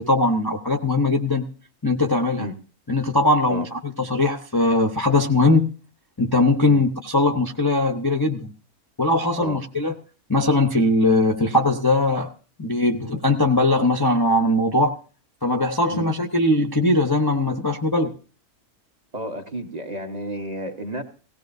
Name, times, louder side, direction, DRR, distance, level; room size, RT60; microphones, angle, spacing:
voice 1, 0.0-1.5 1.8-2.5 2.9-5.7 6.2-8.5 9.0-9.9 10.3-12.3 12.6-15.0 15.4-18.1, left 2 dB, 20° left, 1 dB, 0.8 m, -20 dB
voice 2, 19.1-21.0, equal, 30° right, 3 dB, 1.3 m, -31 dB
18.0 x 17.0 x 2.7 m, 0.38 s
omnidirectional pair, 1.6 m